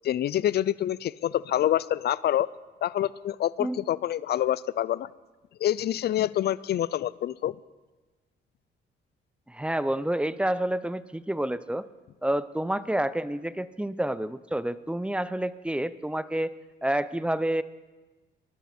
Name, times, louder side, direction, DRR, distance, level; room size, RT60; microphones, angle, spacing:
voice 1, 0.0-2.5 2.8-5.1 5.6-7.5, left 12 dB, 55° left, 20 dB, 0.4 m, -26 dB
voice 2, 9.5-11.8 12.2-16.5 16.8-17.6, right 1 dB, 5° right, 16 dB, 0.5 m, -29 dB
20.0 x 11.5 x 4.4 m, 1.2 s
cardioid pair, 90°, 20 cm